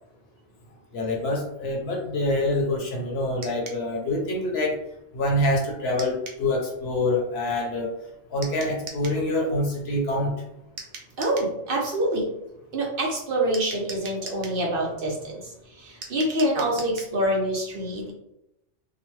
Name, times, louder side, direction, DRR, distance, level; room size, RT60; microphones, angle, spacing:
voice 1, 0.9-4.8 5.1-7.9 8.3-10.3, left 1 dB, 65° left, 0 dB, 0.9 m, -26 dB
sound 1, 3.4-3.8 6.0-6.4 8.4-9.2 10.8-11.5 13.5-14.6 16.0-17.1, right 4 dB, 85° right, 1.0 m, -40 dB
voice 2, 11.2-12.3 12.7-18.1, right 1 dB, 55° right, -2 dB, 0.8 m, -26 dB
2.8 x 2.1 x 3.1 m, 0.84 s
omnidirectional pair, 1.2 m